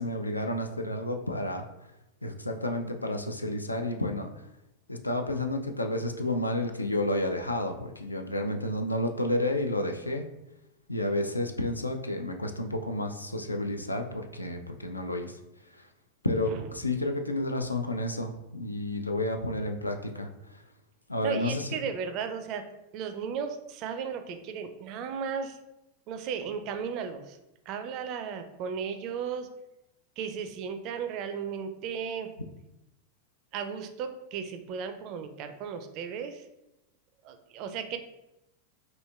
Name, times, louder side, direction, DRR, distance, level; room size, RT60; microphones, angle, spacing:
voice 1, 0.0-1.7 2.2-4.3 4.9-10.2 10.9-15.4 15.7-15.8 16.2-20.3 21.1-21.7, left 1 dB, 85° left, 5 dB, 0.3 m, -31 dB
voice 2, 21.2-22.7 22.9-25.6 26.1-27.4 27.7-29.5 30.2-32.4 33.5-36.5 37.2-38.0, right 6 dB, 40° right, 7 dB, 0.4 m, -35 dB
4.2 x 2.7 x 2.3 m, 0.91 s
figure-of-eight pair, 90°, 0 cm